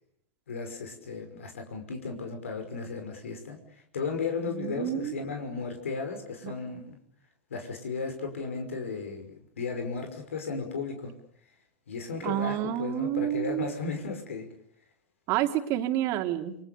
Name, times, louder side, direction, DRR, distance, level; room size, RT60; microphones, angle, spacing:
voice 1, 0.5-7.0 7.5-11.1 11.9-14.5, left 4 dB, 85° left, 5 dB, 5.8 m, -35 dB
voice 2, 4.5-5.1 6.4-6.5 12.2-13.7 15.3-16.6, right 12 dB, 45° right, 6 dB, 3.1 m, -29 dB
29.5 x 23.5 x 6.9 m, 0.68 s
hypercardioid pair, 105°, 7 cm